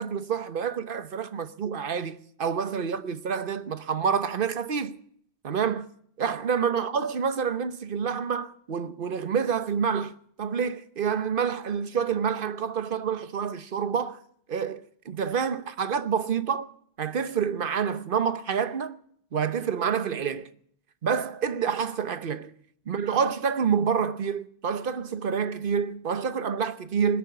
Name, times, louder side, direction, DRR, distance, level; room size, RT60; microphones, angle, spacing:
voice 1, 0.0-5.0 5.4-5.9 6.2-14.2 14.5-16.7 17.0-19.0 19.3-20.5 21.0-22.5 22.9-27.2, right 7 dB, 55° right, 1.1 m, -28 dB
20.0 x 8.9 x 6.8 m
omnidirectional pair, 1.1 m